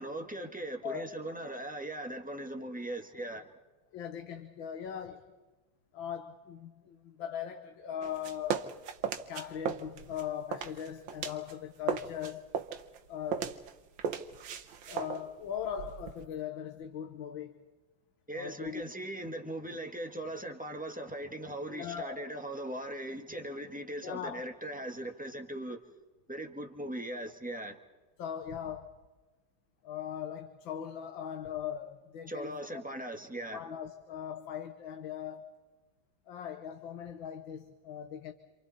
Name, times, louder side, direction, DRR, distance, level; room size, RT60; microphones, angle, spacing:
voice 1, 0.0-3.5 18.3-25.8 26.3-27.8 32.3-33.6, right 1 dB, 5° right, 1.5 m, -39 dB
voice 2, 3.9-5.3 5.9-8.7 9.3-12.5 13.1-13.5 14.9-17.7 18.3-18.8 21.7-22.3 24.0-24.4 28.2-28.9 29.8-32.8 33.5-35.5 36.3-38.3, left 9 dB, 85° left, 1.9 m, -40 dB
sound 1, 8.0-11.5 11.8-16.3, right 8 dB, 90° right, 1.8 m, -37 dB
28.5 x 27.5 x 4.2 m
omnidirectional pair, 2.1 m